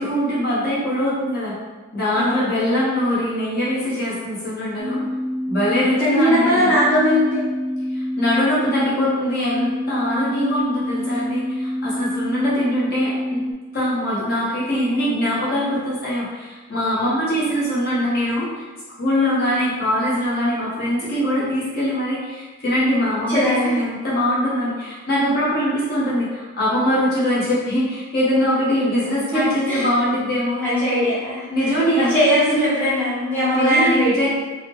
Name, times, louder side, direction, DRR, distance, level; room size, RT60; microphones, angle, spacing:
voice 1, 0.0-1.5 1.9-5.0 5.5-6.8 7.9-13.4 13.7-30.6 31.5-32.2 32.5-32.7 33.5-34.3, equal, 45° left, -8 dB, 1.1 m, -22 dB
voice 2, 2.1-2.5 6.0-7.4 23.3-23.8 29.3-29.9 30.5-34.3, equal, 10° left, -12 dB, 0.8 m, -20 dB
sound 1, 4.8-13.5, left 1 dB, 60° right, 0.6 m, -26 dB
3.9 x 2.1 x 2.9 m, 1.3 s
head